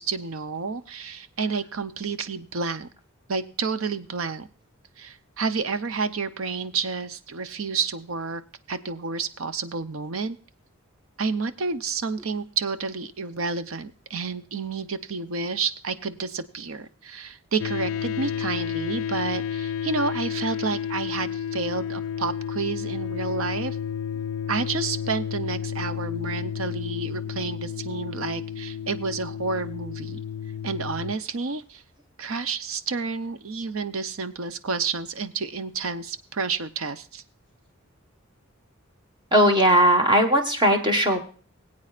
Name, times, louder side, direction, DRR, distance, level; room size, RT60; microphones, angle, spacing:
voice 1, 0.0-2.9 3.3-4.5 5.0-8.4 8.7-10.4 11.2-23.8 24.5-30.2 30.6-31.8 32.2-37.2, right 4 dB, 75° right, 12 dB, 0.7 m, -30 dB
sound 1, 17.6-31.2, left 8 dB, 90° left, 0.4 m, -31 dB
voice 2, 39.3-41.2, equal, 25° right, 4 dB, 1.4 m, -18 dB
20.5 x 8.6 x 2.5 m, 0.38 s
head